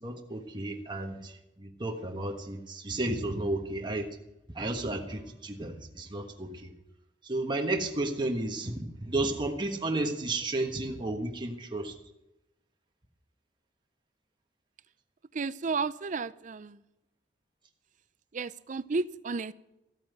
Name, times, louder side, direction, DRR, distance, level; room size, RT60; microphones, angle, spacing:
voice 1, 0.0-1.3 1.6-4.1 4.5-6.7 7.3-8.8 9.1-11.9, right 2 dB, 25° right, 2 dB, 1.4 m, -32 dB
voice 2, 15.3-16.8 18.3-19.5, right 4 dB, 45° right, 16 dB, 0.5 m, -32 dB
14.5 x 8.6 x 6.7 m, 0.93 s
head